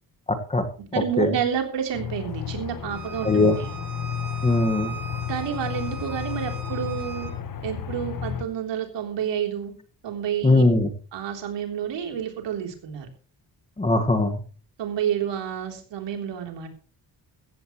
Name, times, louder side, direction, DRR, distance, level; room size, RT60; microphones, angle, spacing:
voice 1, 0.3-0.6 1.2-1.3 3.2-3.6 4.4-4.9 10.4-10.9 13.8-14.4, left 2 dB, 15° left, 6 dB, 1.7 m, -20 dB
voice 2, 0.9-3.7 5.3-7.3 7.6-9.7 10.0-10.6 11.1-13.1 14.8-16.7, right 9 dB, 90° right, 4 dB, 3.6 m, -29 dB
Aircraft, 1.9-8.5, left 9 dB, 50° left, 1.4 m, -33 dB
Bowed string instrument, 2.9-7.3, right 5 dB, 50° right, 6.4 m, -39 dB
16.0 x 15.0 x 3.1 m, 0.38 s
cardioid pair, 140°, 42 cm